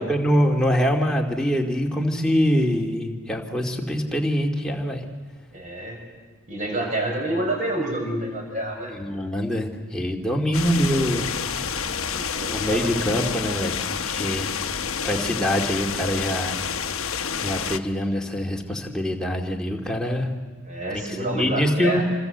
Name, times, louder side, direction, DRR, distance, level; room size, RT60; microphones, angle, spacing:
voice 1, 0.0-5.0 8.9-11.4 12.5-14.5 15.0-16.6 17.4-20.3 20.9-22.0, equal, 5° left, 0 dB, 2.4 m, -24 dB
voice 2, 5.5-6.0 6.5-8.9 12.1-12.9 20.6-22.0, right 1 dB, 35° right, 1 dB, 6.7 m, -28 dB
sound 1, 10.5-17.8, left 6 dB, 70° left, 1.1 m, -29 dB
27.0 x 25.5 x 8.1 m, 1.4 s
head